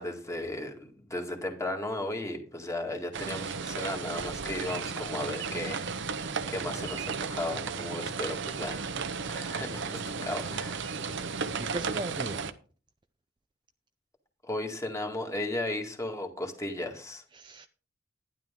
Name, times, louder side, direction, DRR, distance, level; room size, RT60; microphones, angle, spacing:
voice 1, 0.0-5.9 6.1-11.0 14.4-17.2, left 1 dB, 15° left, 2.0 m, -35 dB
sound 1, 3.1-12.5, right 5 dB, 65° right, 0.9 m, -34 dB
voice 2, 11.0-12.4 17.3-17.7, right 2 dB, 25° right, 0.5 m, -39 dB
12.0 x 10.5 x 3.7 m
head